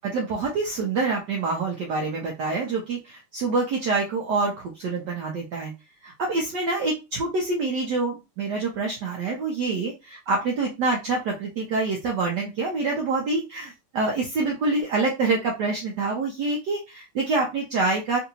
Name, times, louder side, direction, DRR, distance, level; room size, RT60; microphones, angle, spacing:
voice 1, 0.0-5.7 6.0-18.2, right 3 dB, 70° right, 0 dB, 1.1 m, -26 dB
3.8 x 2.6 x 2.7 m, 0.26 s
omnidirectional pair, 2.4 m